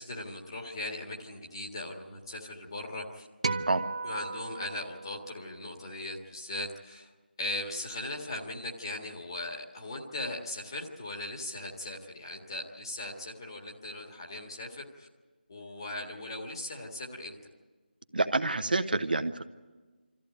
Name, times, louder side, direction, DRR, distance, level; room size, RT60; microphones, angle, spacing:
voice 1, 0.0-3.3 4.0-7.1 7.4-15.1 15.5-17.4, left 1 dB, 25° left, 0 dB, 1.8 m, -39 dB
sound 1, 3.4-5.9, right 3 dB, 35° right, 0.7 m, -36 dB
voice 2, 18.1-19.4, right 2 dB, 60° right, 8 dB, 1.0 m, -28 dB
24.0 x 14.0 x 9.0 m, 1.3 s
figure-of-eight pair, 175°, 6 cm